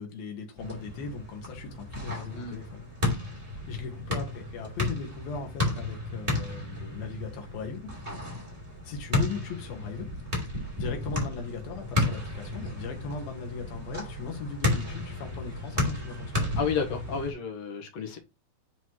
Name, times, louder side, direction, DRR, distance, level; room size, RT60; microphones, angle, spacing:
voice 1, 0.0-2.8 3.7-7.9 8.8-10.1 10.8-16.5, left 5 dB, 75° left, 3.2 m, -38 dB
sound 1, 0.6-17.3, left 2 dB, 10° right, 2.5 m, -33 dB
voice 2, 16.6-18.2, left 6 dB, 60° left, 2.0 m, -31 dB
9.9 x 4.0 x 3.1 m
omnidirectional pair, 4.3 m